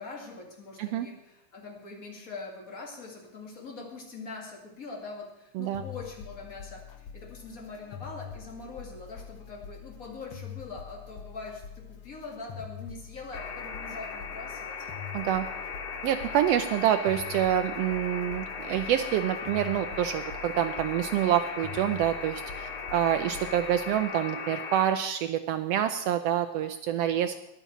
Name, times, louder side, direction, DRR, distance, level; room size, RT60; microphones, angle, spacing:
voice 1, 0.0-14.9, left 3 dB, 30° left, -1 dB, 2.3 m, -43 dB
sound 1, 5.7-24.0, left 8 dB, 80° left, 1.2 m, -45 dB
sound 2, 13.3-24.8, left 5 dB, 60° left, 3.1 m, -38 dB
voice 2, 15.1-15.5 16.0-27.3, right 11 dB, 90° right, 8 dB, 1.4 m, -27 dB
10.5 x 9.7 x 7.1 m, 0.91 s
omnidirectional pair, 3.4 m